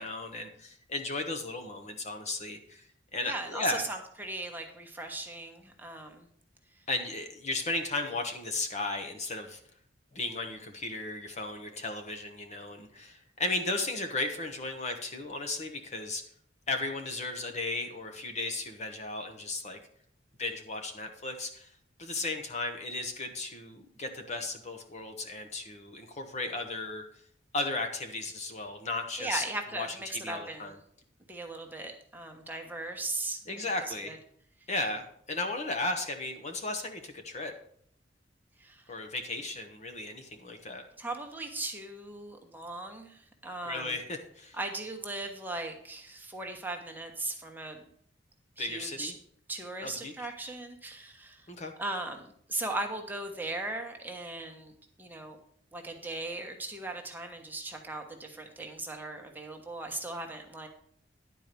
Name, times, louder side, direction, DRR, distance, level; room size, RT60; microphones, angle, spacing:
voice 1, 0.0-2.9 3.1-3.9 6.9-9.6 10.1-16.2 16.7-19.8 20.4-21.7 22.0-27.0 27.5-29.4 29.7-29.9 30.1-30.7 33.5-34.2 34.7-37.5 38.9-40.9 43.6-44.6 48.6-49.1 49.8-50.1 51.5-51.7, left 2 dB, 40° left, 5 dB, 1.1 m, -35 dB
voice 2, 3.2-6.3 29.2-30.8 31.3-33.4 33.9-34.2 38.6-38.8 41.0-44.0 44.6-47.9 48.6-49.1 49.5-51.5 51.8-54.7 55.0-55.4 55.7-60.7, right 2 dB, 10° right, 2 dB, 1.2 m, -38 dB
10.5 x 4.6 x 6.8 m, 0.62 s
head